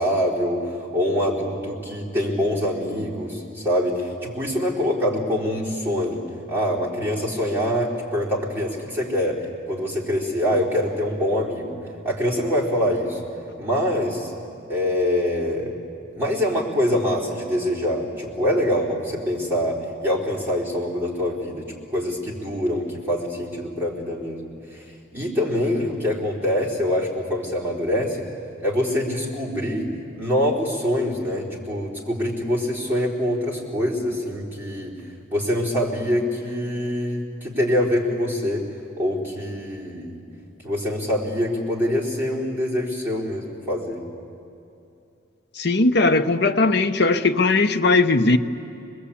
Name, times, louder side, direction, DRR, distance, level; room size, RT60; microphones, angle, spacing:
voice 1, 0.0-6.2 6.5-11.8 12.0-13.2 13.6-14.3 14.7-15.7 16.1-21.7 21.9-24.8 25.1-28.2 28.6-29.9 30.2-34.9 35.3-38.7 39.0-40.2 40.6-44.0, left 1 dB, 10° right, 4.0 m, -24 dB
voice 2, 45.6-48.4, left 3 dB, 55° left, 0.8 m, -18 dB
26.0 x 20.5 x 8.5 m
head